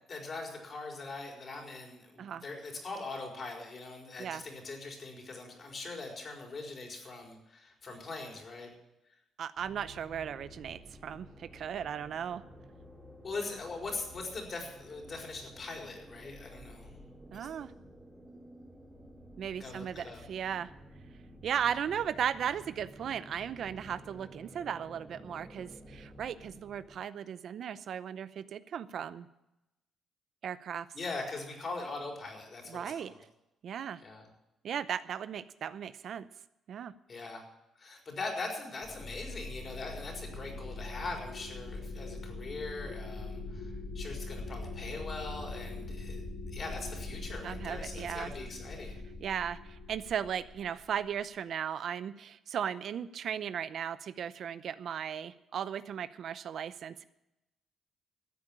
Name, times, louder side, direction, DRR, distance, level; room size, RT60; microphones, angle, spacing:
voice 1, 0.1-8.7 13.2-16.9 19.6-20.2 30.9-33.2 34.0-34.2 37.1-37.5 37.8-46.2 46.5-49.0, left 3 dB, 45° left, 1 dB, 4.7 m, -41 dB
voice 2, 9.4-12.4 17.3-17.7 19.4-20.7 21.4-29.3 30.4-30.9 32.7-33.1 33.6-34.0 34.6-36.3 36.7-36.9 47.4-48.3 49.2-57.0, right 8 dB, 65° right, 14 dB, 0.6 m, -36 dB
sound 1, 9.6-27.0, equal, 5° right, 2.9 m, -52 dB
sound 2, 38.8-51.1, left 2 dB, 65° left, 5.2 m, -42 dB
14.0 x 8.3 x 8.8 m, 0.92 s
cardioid pair, 90°, 0 cm